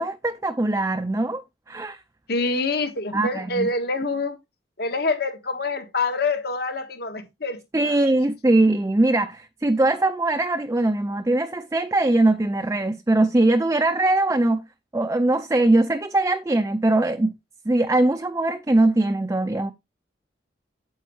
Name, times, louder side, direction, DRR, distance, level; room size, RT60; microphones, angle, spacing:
voice 1, 0.0-2.0 3.1-3.7 7.7-14.6 14.9-17.3 17.7-19.7, right 2 dB, 15° right, 0.4 m, -21 dB
voice 2, 2.3-4.4 4.8-8.0, left 3 dB, 55° left, 1.5 m, -26 dB
9.1 x 7.1 x 3.1 m
head